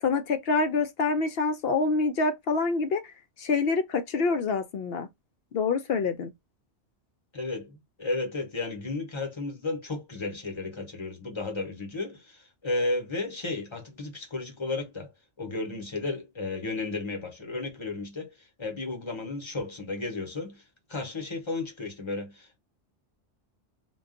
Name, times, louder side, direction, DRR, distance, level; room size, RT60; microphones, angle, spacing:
voice 1, 0.0-3.0 3.4-5.1 5.5-6.3, left 4 dB, 65° left, 0.7 m, -26 dB
voice 2, 7.3-15.1 15.4-18.3 18.6-20.6 20.9-22.6, left 3 dB, 25° left, 0.8 m, -33 dB
2.3 x 2.3 x 3.6 m
omnidirectional pair, 1.2 m